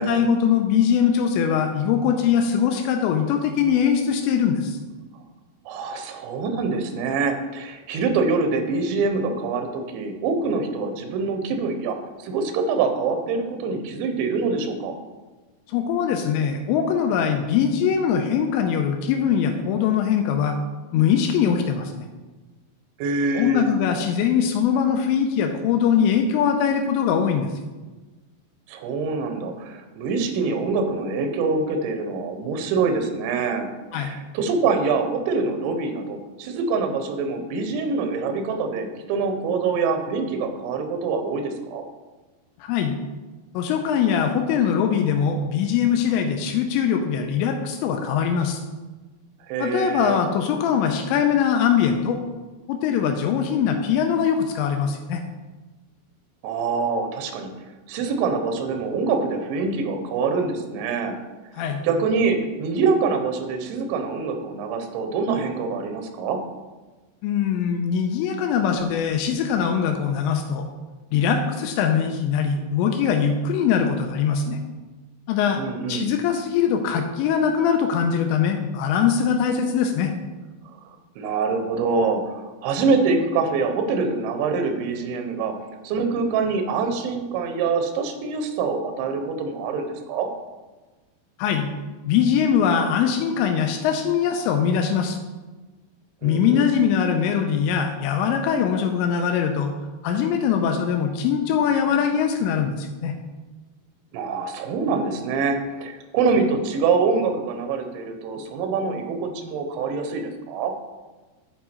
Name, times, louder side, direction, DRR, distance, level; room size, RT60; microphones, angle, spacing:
voice 1, 0.0-4.8 15.7-20.6 20.9-22.1 23.3-27.5 33.9-34.1 42.6-42.9 43.5-48.6 49.6-52.2 52.7-55.2 61.5-61.8 67.2-70.7 71.1-74.6 75.3-75.6 75.9-80.1 91.4-91.7 92.0-95.2 96.2-99.7 100.0-103.1, left 7 dB, 90° left, 4 dB, 2.9 m, -22 dB
voice 2, 5.7-15.0 23.0-23.7 28.7-33.7 33.9-41.8 49.5-50.2 56.4-57.5 57.9-61.2 61.8-66.4 75.6-76.1 81.2-85.5 85.8-90.3 96.2-96.6 104.1-110.7, right 4 dB, 90° right, 6 dB, 3.2 m, -25 dB
10.5 x 4.6 x 4.3 m, 1.2 s
omnidirectional pair, 5.1 m